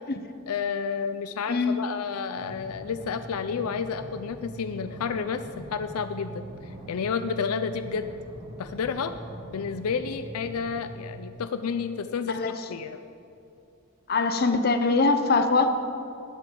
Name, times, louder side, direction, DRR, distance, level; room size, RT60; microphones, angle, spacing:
voice 1, 0.5-6.4 6.9-8.2 8.6-9.1 9.5-13.0, left 6 dB, 80° left, 10 dB, 0.5 m, -30 dB
voice 2, 1.5-1.9 12.3-12.6 14.1-15.7, left 3 dB, 45° left, 7 dB, 0.7 m, -23 dB
sound 1, 2.4-11.3, right 1 dB, 45° right, 2.4 m, -42 dB
19.0 x 8.2 x 3.8 m, 2.7 s
head